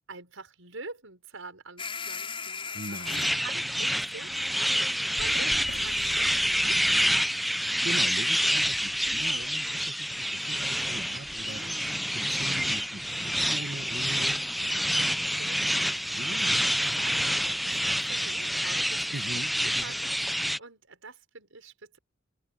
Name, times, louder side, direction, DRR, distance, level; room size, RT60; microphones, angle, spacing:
voice 1, 0.1-3.0 3.3-8.0 9.0-9.5 11.5-12.1 13.1-13.5 14.6-19.4 19.8-22.0, right 4 dB, 85° right, 6.0 m, -46 dB
sound 1, 1.8-3.4 4.6-4.7 6.7-6.9 7.2-8.4, left 5 dB, 25° left, 6.4 m, -39 dB
voice 2, 2.7-3.4 7.8-11.8 12.1-14.4 16.1-16.6 19.1-19.9, right 2 dB, 55° right, 1.6 m, -41 dB
sound 2, 3.0-20.6, equal, ahead, 0.5 m, -28 dB
sound 3, 5.2-8.0, left 2 dB, 90° left, 6.1 m, -44 dB
open air
head